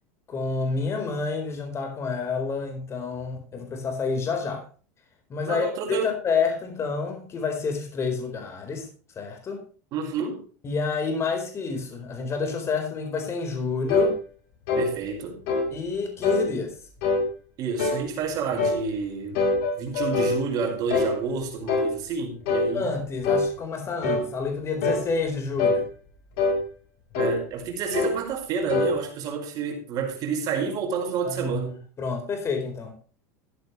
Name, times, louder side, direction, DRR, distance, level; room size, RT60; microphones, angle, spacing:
voice 1, 0.3-4.7 5.3-8.9 9.2-9.6 10.6-14.1 15.7-16.7 22.7-25.9 31.2-32.9, left 4 dB, 30° left, 4.4 m, -29 dB
voice 2, 5.4-6.1 9.9-10.4 14.7-15.4 17.6-19.5 19.8-22.9 27.1-31.8, right 5 dB, 50° right, 4.9 m, -29 dB
sound 1, 13.9-14.1 14.7-14.9 15.5-15.7 16.2-16.5 17.0-17.3 17.8-18.1 18.6-18.8 19.3-20.4 20.9-21.1 21.7-21.9 22.5-22.7 23.2-23.5 24.0-24.3 24.8-25.0 25.6-25.8 26.4-26.6 27.1-27.4 27.9-28.2 28.7-28.9, left 3 dB, 65° left, 5.0 m, -23 dB
14.0 x 11.5 x 3.2 m
hypercardioid pair, 95°, 8 cm